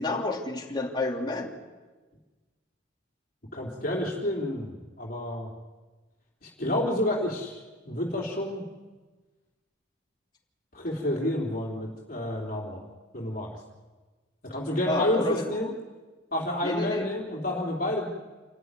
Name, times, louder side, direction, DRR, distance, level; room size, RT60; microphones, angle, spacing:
voice 1, 0.0-1.5 14.8-15.4 16.6-17.1, left 2 dB, 20° left, 0 dB, 3.1 m, -30 dB
voice 2, 3.5-5.5 6.4-8.6 10.7-12.9 13.1-13.5 14.4-15.7 16.3-18.1, left 1 dB, 45° left, -2 dB, 3.5 m, -29 dB
28.5 x 14.0 x 9.7 m, 1.3 s
head